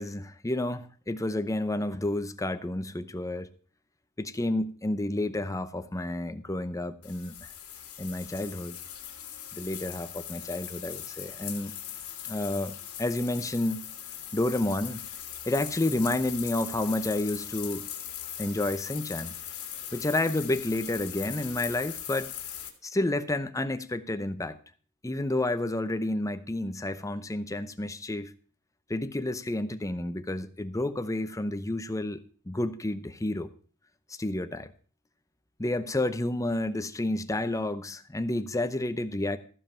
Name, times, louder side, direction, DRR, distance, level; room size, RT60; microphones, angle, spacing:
voice 1, 0.0-3.5 4.2-7.5 8.0-8.8 9.5-11.8 12.2-13.9 14.3-15.0 15.5-17.9 18.4-19.3 19.9-22.3 22.8-24.6 25.0-28.3 28.9-33.5 34.2-34.7 35.6-39.4, left 1 dB, 15° left, 11 dB, 0.7 m, -30 dB
sound 1, 7.0-22.7, left 10 dB, 80° left, 2.5 m, -40 dB
14.5 x 5.3 x 7.2 m, 0.42 s
head